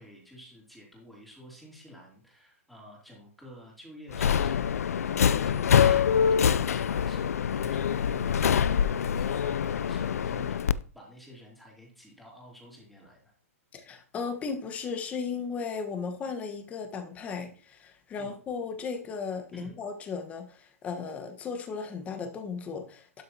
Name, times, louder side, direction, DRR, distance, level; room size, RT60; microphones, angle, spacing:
voice 1, 0.0-10.6 10.9-13.3 18.2-18.3 19.5-19.7, equal, ahead, -3 dB, 3.0 m, -50 dB
Subway metro underground, 4.1-10.7, left 8 dB, 85° left, 0.4 m, -25 dB
voice 2, 13.7-23.2, left 5 dB, 15° left, 6 dB, 1.2 m, -36 dB
12.0 x 6.4 x 2.9 m, 0.42 s
hypercardioid pair, 150°, 8 cm